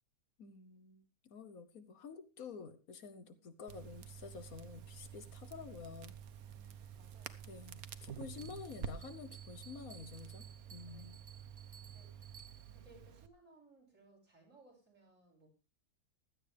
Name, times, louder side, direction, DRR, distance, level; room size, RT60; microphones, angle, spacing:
voice 1, 0.4-6.2 7.5-11.2, left 5 dB, 65° left, 11 dB, 1.4 m, -50 dB
Crackle, 3.7-13.3, right 8 dB, 70° right, 1.3 m, -50 dB
voice 2, 6.4-7.7 10.8-11.2 11.9-12.3 12.7-15.5, right 2 dB, 55° right, -1 dB, 5.9 m, -65 dB
Bell, 8.4-12.9, right 7 dB, 35° right, 1.0 m, -59 dB
16.0 x 12.0 x 3.4 m, 0.29 s
omnidirectional pair, 1.6 m